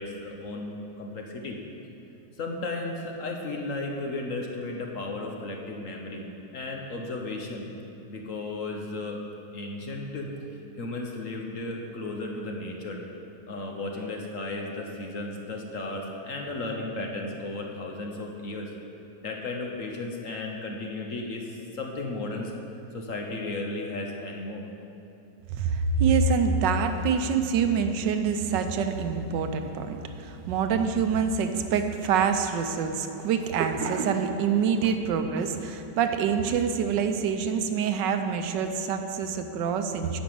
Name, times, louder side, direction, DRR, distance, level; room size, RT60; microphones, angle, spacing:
voice 1, 0.0-1.6 2.4-6.2 6.5-7.6 8.1-9.2 9.5-10.3 10.8-13.0 13.5-18.7 19.2-22.5 22.9-24.7, left 2 dB, 55° left, 1 dB, 1.2 m, -34 dB
voice 2, 25.5-40.2, right 6 dB, 85° right, 7 dB, 1.4 m, -26 dB
11.5 x 5.2 x 7.7 m, 2.8 s
omnidirectional pair, 1.9 m